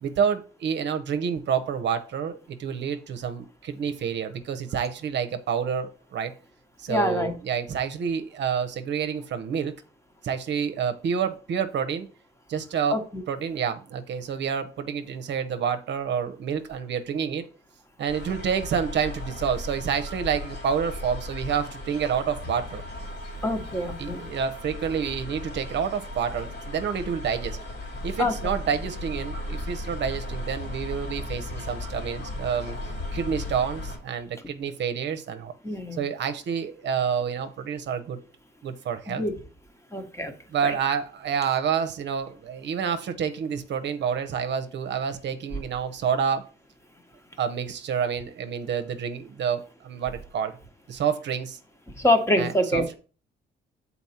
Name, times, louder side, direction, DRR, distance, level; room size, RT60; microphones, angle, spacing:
voice 1, 0.0-6.3 6.8-9.7 10.2-12.1 12.5-13.0 13.3-17.4 18.0-22.8 24.0-27.6 28.0-32.8 33.1-35.5 35.9-38.2 38.6-39.2 40.5-46.5 47.4-50.6 50.9-51.6 52.4-52.9, right 7 dB, 65° right, 8 dB, 0.8 m, -28 dB
voice 2, 6.9-7.3 12.9-13.2 23.4-24.2 28.2-28.4 35.6-36.0 39.1-39.3 39.9-40.3 40.6-40.7 52.0-52.9, left 1 dB, 15° left, 6 dB, 1.1 m, -25 dB
sound 1, 18.1-34.0, left 2 dB, 60° left, 2.7 m, -36 dB
7.1 x 4.2 x 4.3 m, 0.38 s
cardioid pair, 90°, 20 cm